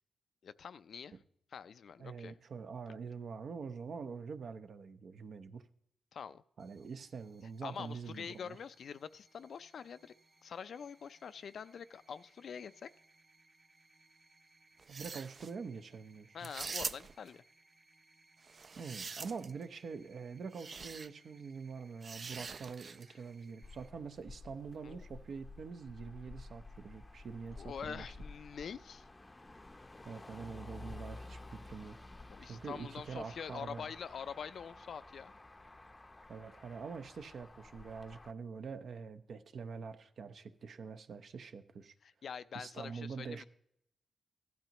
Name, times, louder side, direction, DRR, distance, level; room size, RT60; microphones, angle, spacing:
voice 1, 0.4-1.2 1.5-2.4 6.1-6.4 7.6-10.1 10.4-12.9 16.3-17.4 24.8-25.0 27.5-29.1 32.3-35.3 42.0-43.4, left 7 dB, 70° left, 0.4 m, -45 dB
voice 2, 2.0-5.6 6.6-8.6 14.9-16.5 18.8-28.0 30.0-32.0 32.4-33.9 36.3-41.9 42.5-43.5, right 5 dB, 70° right, 0.7 m, -45 dB
sound 1, 6.6-23.9, right 2 dB, 35° right, 1.6 m, -67 dB
sound 2, 14.8-15.5 16.4-17.3 18.5-19.6 20.5-21.1 22.0-23.1, right 5 dB, 50° right, 0.3 m, -43 dB
Motor vehicle (road), 23.6-38.3, left 2 dB, 20° left, 0.6 m, -52 dB
15.5 x 12.0 x 2.9 m
cardioid pair, 80°, 0 cm